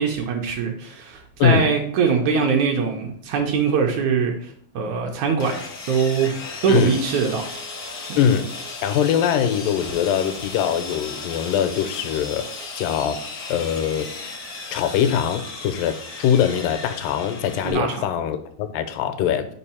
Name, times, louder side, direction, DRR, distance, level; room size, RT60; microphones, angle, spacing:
voice 1, 0.0-5.5 5.9-6.3 6.6-7.4 8.1-8.2 17.6-18.0, right 6 dB, 75° right, 2 dB, 1.9 m, -22 dB
voice 2, 1.4-1.7 6.7-7.0 8.2-8.5 8.8-12.5 12.8-13.2 13.5-14.1 14.7-19.5, left 9 dB, 90° left, 9 dB, 2.3 m, -22 dB
Sawing, 5.4-17.7, left 3 dB, 65° left, 0.9 m, -35 dB
5.4 x 5.1 x 4.2 m, 0.63 s
omnidirectional pair, 3.9 m